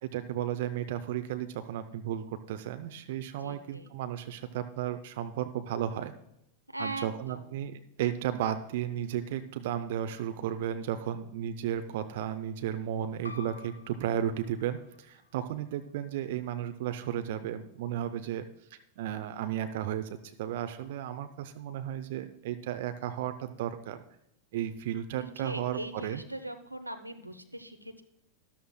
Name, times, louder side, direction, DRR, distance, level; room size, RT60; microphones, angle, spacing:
voice 1, 0.0-6.1 6.8-18.5 18.7-24.0 24.5-26.2, right 10 dB, 55° right, 9 dB, 0.6 m, -34 dB
voice 2, 3.4-3.9 6.7-7.6 23.1-23.2 25.2-28.0, right 1 dB, 90° right, 7 dB, 0.8 m, -40 dB
sound 1, 13.2-18.4, left 3 dB, 80° left, 0.7 m, -52 dB
13.0 x 12.5 x 2.2 m, 0.81 s
figure-of-eight pair, 90°, 0 cm